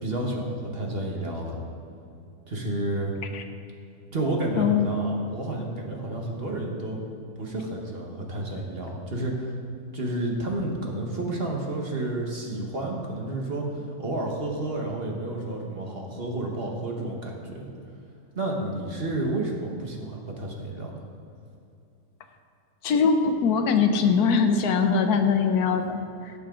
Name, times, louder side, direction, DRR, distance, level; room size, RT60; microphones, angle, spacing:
voice 1, 0.0-1.6 2.5-3.1 4.1-7.0 7.4-9.5 9.9-13.7 14.0-17.7 18.3-21.0, right 1 dB, 40° right, 0 dB, 1.5 m, -30 dB
voice 2, 4.6-4.9 22.8-26.3, left 5 dB, 75° left, 7 dB, 1.2 m, -22 dB
17.0 x 6.9 x 3.8 m, 2.5 s
omnidirectional pair, 1.7 m